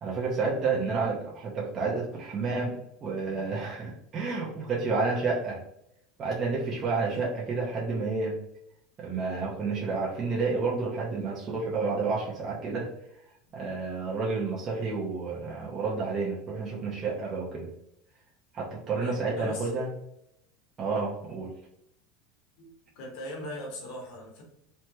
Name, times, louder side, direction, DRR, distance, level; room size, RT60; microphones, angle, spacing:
voice 1, 0.0-5.6 6.2-8.4 9.0-12.9 13.5-17.7 18.5-19.9 20.8-21.6, right 4 dB, 35° right, -5 dB, 0.8 m, -30 dB
voice 2, 18.9-19.7 22.6-24.4, left 1 dB, 70° left, -1 dB, 1.2 m, -40 dB
3.2 x 2.2 x 2.9 m, 0.79 s
supercardioid pair, 120°, 0 cm